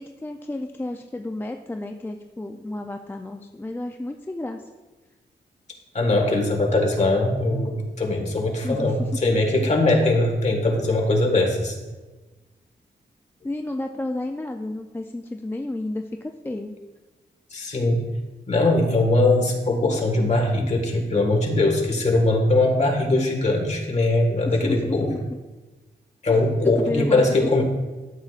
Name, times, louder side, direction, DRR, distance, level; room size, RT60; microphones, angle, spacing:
voice 1, 0.0-4.6 8.6-9.1 11.3-11.4 13.4-16.7 24.5-25.4 26.3-27.5, left 2 dB, 10° left, 4 dB, 0.4 m, -32 dB
voice 2, 5.9-11.7 17.5-18.0 18.5-25.1 26.2-27.6, left 2 dB, 40° left, 1 dB, 1.6 m, -21 dB
13.0 x 7.3 x 2.4 m, 1.2 s
wide cardioid pair, 125°, 18 cm